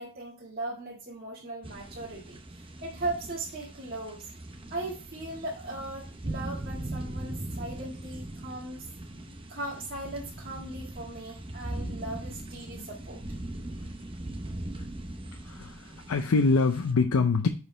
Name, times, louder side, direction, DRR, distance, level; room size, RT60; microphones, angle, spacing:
voice 1, 0.0-4.3 4.7-8.9 9.5-13.2, right 2 dB, 45° right, -5 dB, 1.8 m, -38 dB
sound 1, 1.6-16.9, right 1 dB, 25° right, 0.8 m, -40 dB
voice 2, 15.3-17.5, left 4 dB, 85° left, 6 dB, 0.6 m, -25 dB
10.0 x 4.8 x 3.3 m, 0.35 s
head